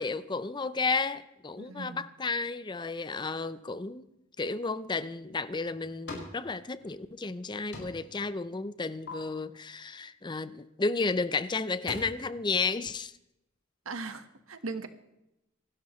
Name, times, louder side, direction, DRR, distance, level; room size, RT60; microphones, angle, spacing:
voice 1, 0.0-4.1 4.4-13.1, left 4 dB, 20° left, 0.5 m, -32 dB
voice 2, 1.6-2.0 13.8-14.9, right 3 dB, 80° right, 1.3 m, -38 dB
sound 1, 5.3-6.4 6.7-7.4 7.7-8.2 8.5-9.1 10.9-11.1 11.5-12.0, left 2 dB, 55° left, 5.1 m, -44 dB
26.5 x 12.5 x 3.2 m
head